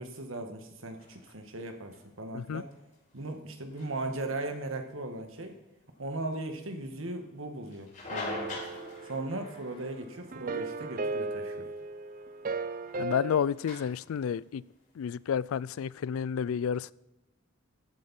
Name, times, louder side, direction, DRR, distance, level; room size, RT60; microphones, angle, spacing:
voice 1, 0.0-2.7 3.1-5.6 6.0-8.6 9.0-11.7, right 2 dB, 75° right, 1.6 m, -38 dB
sound 1, 0.9-16.0, left 2 dB, 35° left, 4.7 m, -47 dB
sound 2, 8.3-9.8 10.3-13.4, right 3 dB, 40° right, 0.5 m, -36 dB
voice 2, 13.0-14.6 15.0-16.9, left 7 dB, 85° left, 0.3 m, -30 dB
14.5 x 8.6 x 4.3 m
head